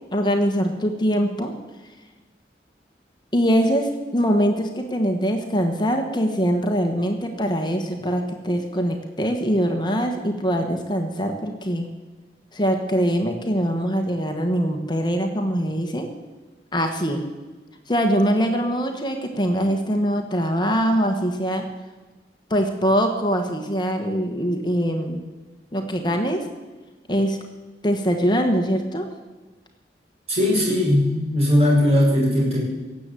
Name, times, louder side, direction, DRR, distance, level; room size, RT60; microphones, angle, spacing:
voice 1, 0.1-1.5 3.3-11.9 12.5-16.1 16.7-17.3 17.9-21.7 22.5-25.2 25.7-26.5 27.1-27.4 27.8-29.1, equal, 25° left, 4 dB, 1.3 m, -23 dB
voice 2, 30.3-32.6, left 1 dB, 35° right, -4 dB, 5.8 m, -19 dB
17.5 x 7.6 x 8.4 m, 1.2 s
head